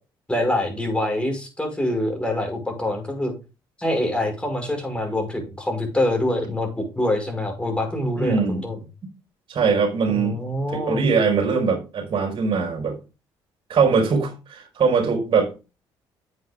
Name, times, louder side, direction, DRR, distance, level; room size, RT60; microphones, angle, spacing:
voice 1, 0.3-3.3 3.8-8.7 10.1-11.1, left 1 dB, 10° left, 5.7 m, -25 dB
voice 2, 8.2-8.6 9.5-10.4 10.7-13.0 13.7-15.5, right 5 dB, 50° right, 5.0 m, -21 dB
9.3 x 8.2 x 3.7 m
supercardioid pair, 60°, 11 cm